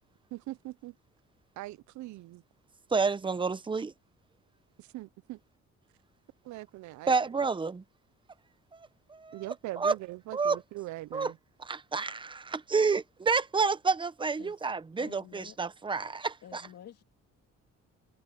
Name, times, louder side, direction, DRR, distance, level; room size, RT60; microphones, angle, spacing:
voice 1, 0.3-0.9 1.6-2.4 4.9-5.4 6.5-7.1 9.3-11.3, right 17 dB, 75° right, 0.5 m, -41 dB
voice 2, 2.9-3.9 7.1-7.8 8.7-10.0 10.3-10.6 11.1-11.3 11.6-16.6, right 4 dB, 15° right, 0.7 m, -29 dB
voice 3, 15.0-15.6 16.4-17.0, left 10 dB, 60° left, 2.7 m, -49 dB
cardioid pair, 160°, 29 cm